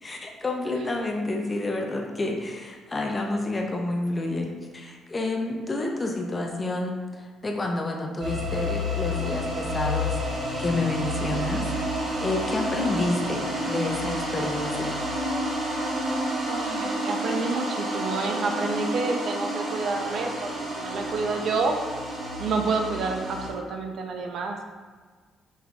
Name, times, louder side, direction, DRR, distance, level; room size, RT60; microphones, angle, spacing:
voice 1, 0.0-11.7 11.9-15.0, left 2 dB, 20° left, 1 dB, 0.5 m, -29 dB
sound 1, 8.2-23.5, equal, 75° right, 1.3 m, -29 dB
voice 2, 16.5-21.8 22.4-24.7, right 4 dB, 55° right, 4 dB, 0.4 m, -29 dB
5.3 x 3.4 x 2.4 m, 1.5 s
cardioid pair, 135°, 0 cm